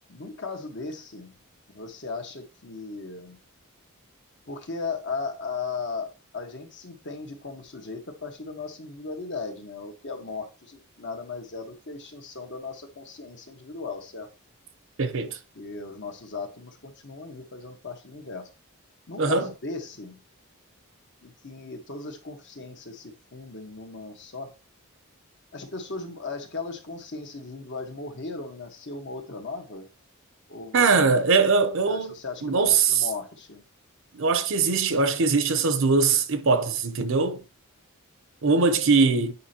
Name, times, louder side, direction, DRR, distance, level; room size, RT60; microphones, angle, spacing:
voice 1, 0.1-1.3 1.7-3.4 4.5-14.3 15.2-18.5 19.1-20.2 21.2-24.5 25.5-29.9 30.5-30.9 31.9-33.6, left 4 dB, 55° left, 1.3 m, -37 dB
voice 2, 15.0-15.4 19.2-19.5 30.7-32.1 32.4-33.0 34.1-37.4 38.4-39.3, right 4 dB, 60° right, 0.7 m, -21 dB
8.4 x 5.2 x 2.8 m
head